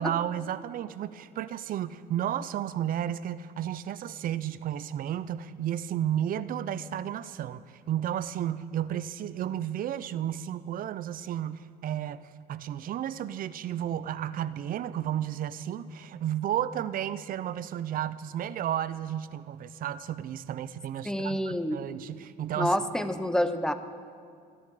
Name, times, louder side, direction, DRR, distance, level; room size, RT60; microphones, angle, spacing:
voice 1, 0.0-12.2 12.5-22.8, right 10 dB, 55° right, 15 dB, 0.6 m, -32 dB
voice 2, 21.0-21.8 22.6-23.7, left 1 dB, 5° left, 11 dB, 0.7 m, -28 dB
26.5 x 10.5 x 4.9 m, 2.2 s
cardioid pair, 110°, 17 cm